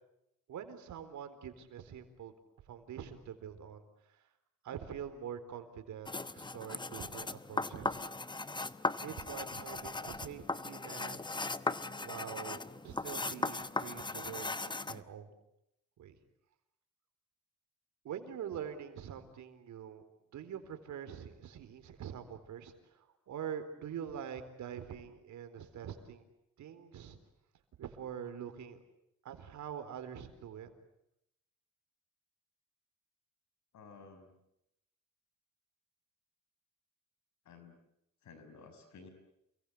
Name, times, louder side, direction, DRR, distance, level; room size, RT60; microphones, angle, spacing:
voice 1, 0.5-2.3 2.7-3.8 4.1-4.2 4.6-8.0 9.0-11.2 12.0-15.3 16.0-16.2 18.0-20.0 20.3-26.2 26.6-27.2 27.8-28.8 29.2-30.7, right 8 dB, 70° right, 9 dB, 4.1 m, -45 dB
sound 1, 6.1-15.0, left 3 dB, 15° left, 1.0 m, -38 dB
voice 2, 33.7-34.3 37.4-37.8 38.2-39.1, left 4 dB, 70° left, 8 dB, 6.0 m, -54 dB
29.5 x 23.0 x 8.4 m, 0.81 s
cardioid pair, 90°, 30 cm